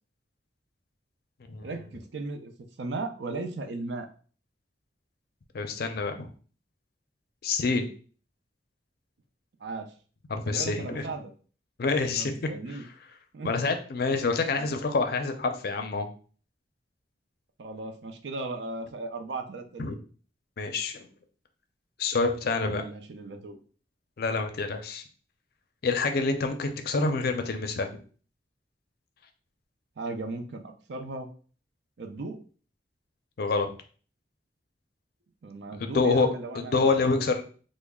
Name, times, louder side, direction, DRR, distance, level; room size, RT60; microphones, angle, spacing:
voice 1, 1.6-2.5 2.8-4.1 9.6-9.9 10.4-11.3 12.1-12.8 13.3-13.5 14.6-14.8 17.6-20.0 22.6-23.6 30.0-31.3 32.0-32.4 35.4-37.1, right 3 dB, 75° right, 6 dB, 0.5 m, -37 dB
voice 2, 5.5-6.3 7.4-7.9 10.3-11.0 11.8-12.5 13.4-16.1 19.8-20.0 20.6-21.1 22.0-22.8 24.2-25.0 25.8-27.9 33.4-33.7 35.8-36.3 36.5-37.4, left 4 dB, 60° left, 6 dB, 0.5 m, -27 dB
3.0 x 2.1 x 3.5 m, 0.41 s
head